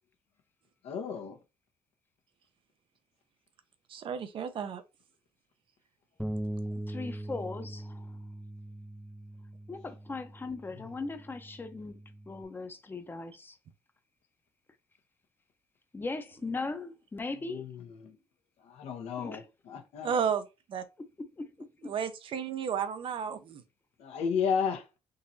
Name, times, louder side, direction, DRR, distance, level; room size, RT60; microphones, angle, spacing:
voice 1, 0.9-1.4 17.5-18.1 18.6-20.1 24.0-24.8, left 6 dB, 80° left, 1.1 m, -33 dB
voice 2, 3.9-4.8 20.0-20.4 20.7-20.8 21.9-23.6, right 7 dB, 55° right, 0.6 m, -32 dB
Bass guitar, 6.2-12.4, right 1 dB, ahead, 0.3 m, -41 dB
voice 3, 6.9-8.1 9.7-13.6 15.9-17.7 19.2-19.4 21.2-21.9, left 3 dB, 20° left, 0.7 m, -39 dB
3.8 x 2.9 x 2.7 m
cardioid pair, 90°, 10 cm